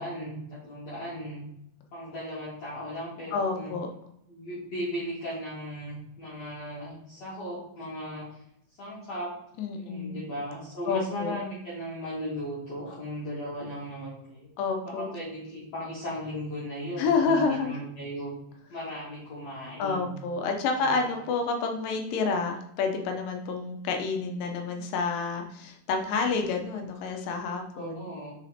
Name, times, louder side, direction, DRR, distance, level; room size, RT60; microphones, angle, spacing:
voice 1, 0.0-1.5 1.9-3.7 4.3-8.4 8.8-9.3 9.8-14.5 14.8-18.3 18.7-20.2 20.7-21.2 27.7-28.3, equal, 50° left, -10 dB, 3.0 m, -37 dB
voice 2, 3.3-3.9 9.6-10.2 10.9-11.3 14.6-15.1 17.0-17.8 19.8-28.1, left 4 dB, 85° left, 4 dB, 2.5 m, -29 dB
6.5 x 4.0 x 4.2 m, 0.75 s
omnidirectional pair, 3.9 m